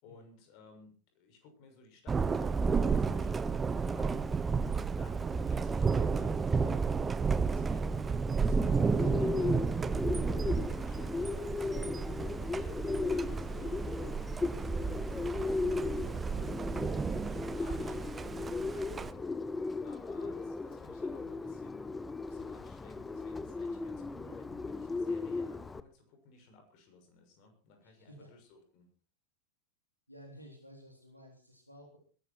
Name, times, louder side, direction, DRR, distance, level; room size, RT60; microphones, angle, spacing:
voice 1, 0.0-11.7 12.1-19.4 19.8-21.9 22.2-28.9, left 4 dB, 45° left, 5 dB, 6.5 m, -57 dB
Thunder, 2.1-19.1, right 5 dB, 15° right, 0.8 m, -32 dB
Bird, 8.8-25.8, left 3 dB, 10° left, 1.0 m, -36 dB
voice 2, 27.8-28.3 30.1-32.0, equal, 90° left, 2 dB, 3.6 m, -54 dB
21.0 x 12.0 x 4.5 m, 0.37 s
figure-of-eight pair, 90°, 0 cm